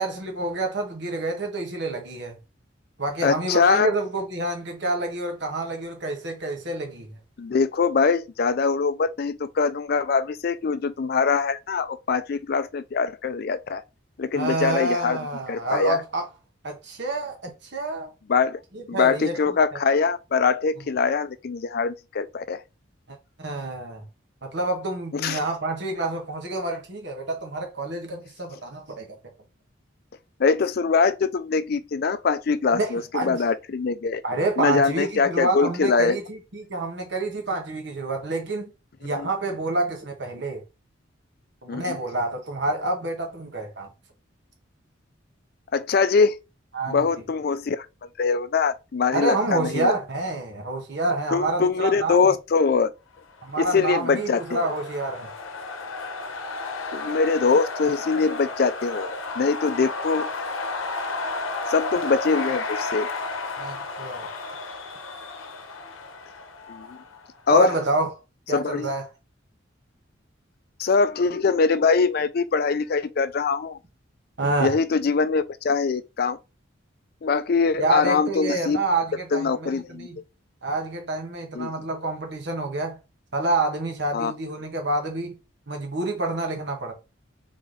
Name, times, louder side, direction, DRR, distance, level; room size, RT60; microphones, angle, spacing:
voice 1, 0.0-2.4 3.0-7.1 14.3-16.2 16.6-18.1 18.7-19.6 23.1-24.0 24.4-29.2 32.7-33.4 34.2-38.7 39.0-40.6 41.6-43.9 46.7-47.1 49.1-52.2 53.4-55.3 63.6-64.3 67.5-68.1 68.5-69.1 74.4-74.8 77.8-80.2 80.6-83.0 83.3-85.4 85.7-86.9, right 2 dB, 60° right, 1.2 m, -28 dB
voice 2, 3.2-3.9 7.4-13.8 14.2-15.2 15.5-16.0 18.3-18.6 18.9-22.6 25.1-25.4 30.4-34.2 34.6-36.2 39.2-39.3 41.7-42.0 45.7-46.4 46.9-47.9 48.2-49.9 51.3-52.9 53.6-54.6 56.9-60.3 61.7-63.1 66.7-67.0 67.5-67.7 68.5-68.9 70.8-73.8 74.6-76.4 77.2-78.8 79.3-80.2 81.5-81.7 84.1-84.3, left 5 dB, 50° left, 0.4 m, -23 dB
sound 1, 53.5-67.3, left 3 dB, 90° left, 0.8 m, -33 dB
3.8 x 3.3 x 3.8 m
head